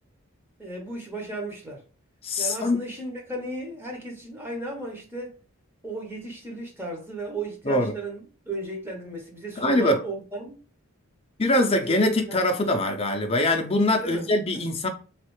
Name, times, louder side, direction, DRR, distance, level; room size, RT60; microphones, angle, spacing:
voice 1, 0.6-1.8 2.4-5.3 5.8-10.6 11.7-12.4 14.0-14.3 14.5-14.6, right 2 dB, 10° right, 0.8 m, -35 dB
voice 2, 2.2-2.8 7.7-7.9 9.6-10.0 11.4-14.9, left 1 dB, 25° left, 0.5 m, -23 dB
3.2 x 2.4 x 3.1 m
head